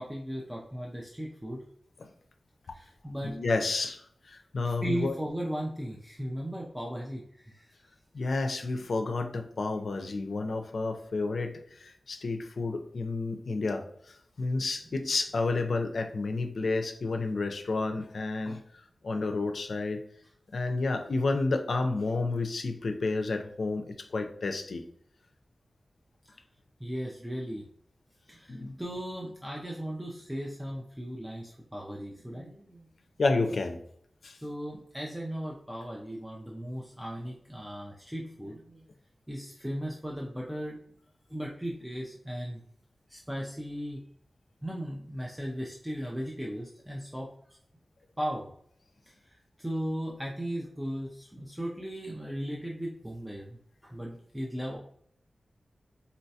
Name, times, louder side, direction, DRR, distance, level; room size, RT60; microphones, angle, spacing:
voice 1, 0.0-1.6 2.7-3.3 4.6-7.8 26.8-27.6 28.3-32.9 34.4-38.8 39.3-40.8 41.3-42.6 43.1-44.0 44.6-47.6 48.2-48.5 49.1-53.6 53.8-54.8, equal, 5° right, -2 dB, 0.4 m, -37 dB
voice 2, 3.2-5.1 8.1-18.6 19.0-20.0 20.5-24.8 28.5-28.8 33.2-33.8 34.2-34.4, left 3 dB, 75° left, 5 dB, 0.4 m, -30 dB
3.9 x 2.2 x 2.7 m, 0.65 s
wide cardioid pair, 100°, 0 cm